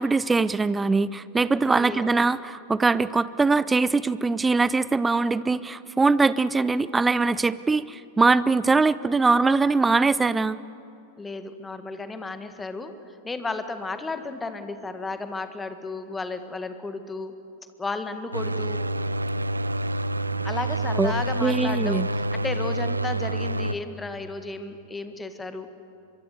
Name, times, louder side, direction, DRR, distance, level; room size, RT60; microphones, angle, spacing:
voice 1, 0.0-10.6 21.0-21.1 21.4-22.1, right 3 dB, 10° right, 18 dB, 0.7 m, -22 dB
voice 2, 1.6-2.0 11.2-12.9 13.2-17.4 17.8-18.8 20.4-25.7, left 3 dB, 10° left, 9 dB, 1.7 m, -33 dB
sound 1, 18.3-23.7, right 1 dB, 80° right, 0.6 m, -27 dB
24.5 x 22.5 x 8.2 m, 2.7 s
figure-of-eight pair, 90°, 0 cm